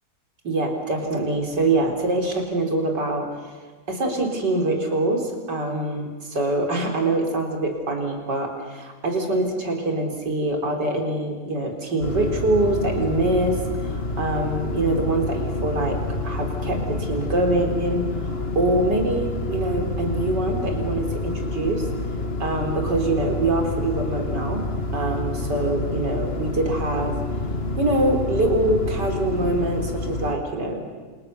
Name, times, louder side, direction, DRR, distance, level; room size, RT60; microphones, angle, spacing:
voice 1, 0.4-3.3 3.9-16.0 16.2-21.8 22.4-24.6 24.9-27.1 27.8-30.8, right 2 dB, 75° right, 3 dB, 4.5 m, -24 dB
sound 1, 12.0-30.3, left 2 dB, 35° left, 1.8 m, -28 dB
30.0 x 26.5 x 6.9 m, 1.4 s
omnidirectional pair, 1.9 m